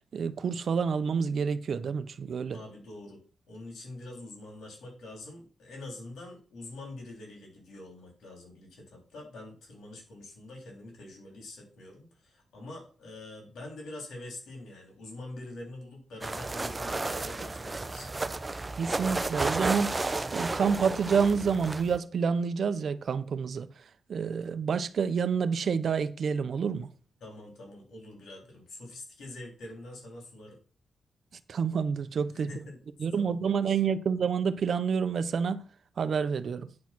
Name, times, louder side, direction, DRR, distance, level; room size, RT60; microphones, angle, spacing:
voice 1, 0.1-2.6 18.8-20.0 20.3-23.7 24.1-26.9 31.5-32.5 33.0-35.6 36.0-36.7, right 6 dB, 55° right, 0.7 m, -28 dB
voice 2, 2.5-3.2 3.5-18.1 27.2-30.6 32.3-32.8 33.1-33.8, left 2 dB, 85° left, 3.8 m, -45 dB
sound 1, 16.2-22.0, right 2 dB, 20° right, 0.6 m, -32 dB
9.5 x 4.8 x 6.0 m
wide cardioid pair, 130°, 0 cm